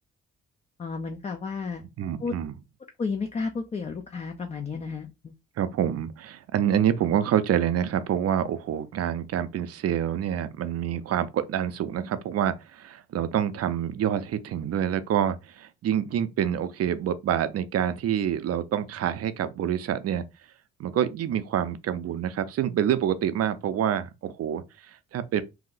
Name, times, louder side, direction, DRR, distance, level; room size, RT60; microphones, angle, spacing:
voice 1, 0.8-1.8 2.2-2.3 3.0-5.3, left 4 dB, 20° left, 0.4 m, -32 dB
voice 2, 2.0-2.5 5.6-20.2 20.8-25.4, right 9 dB, 55° right, 0.5 m, -27 dB
2.8 x 2.1 x 3.9 m
cardioid pair, 90°, 30 cm